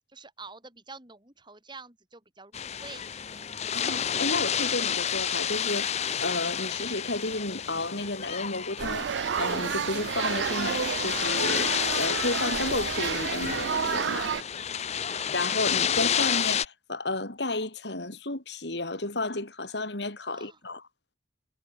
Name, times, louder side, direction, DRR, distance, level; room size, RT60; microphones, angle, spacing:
voice 1, 0.1-3.5 14.7-15.0 20.3-20.6, right 4 dB, 25° right, 7.5 m, -48 dB
sound 1, 2.5-16.7, left 8 dB, 40° left, 0.7 m, -30 dB
voice 2, 3.7-14.3 15.3-20.8, left 2 dB, 75° left, 3.6 m, -32 dB
sound 2, 8.8-14.4, right 7 dB, 80° right, 0.4 m, -30 dB
head